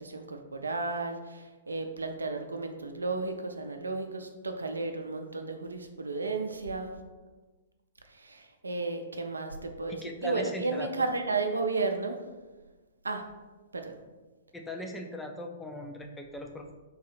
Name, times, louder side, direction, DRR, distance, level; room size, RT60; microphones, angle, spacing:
voice 1, 0.0-6.9 8.2-12.2 13.0-13.2 13.7-13.9, right 3 dB, 75° right, 5 dB, 0.5 m, -33 dB
voice 2, 9.9-11.1 14.5-16.7, equal, 5° left, 3 dB, 0.4 m, -39 dB
3.9 x 2.7 x 4.0 m, 1.2 s
figure-of-eight pair, 115°, 0 cm